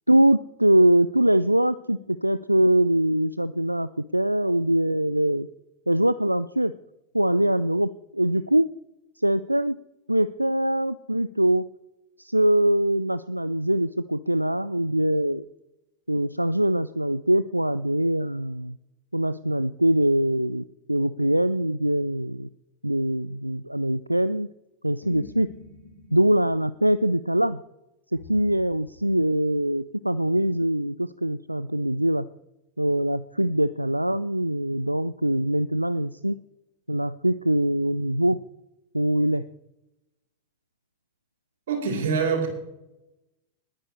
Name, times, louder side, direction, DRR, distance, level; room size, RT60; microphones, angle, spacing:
voice 1, 0.1-5.5 5.9-6.7 7.1-8.7 9.2-9.8 10.1-11.7 12.2-15.4 16.1-18.8 19.1-22.5 22.8-24.5 24.8-25.5 26.1-27.6 28.1-32.3 32.8-36.4 36.9-38.4 38.9-39.4, right 1 dB, 90° right, 15 dB, 0.3 m, -23 dB
sound 1, 25.0-26.7 28.1-29.4, left 1 dB, 70° left, 5.1 m, -46 dB
voice 2, 41.7-42.5, right 5 dB, 60° right, 2 dB, 4.2 m, -24 dB
20.5 x 9.9 x 3.2 m, 0.91 s
figure-of-eight pair, 90°, 0 cm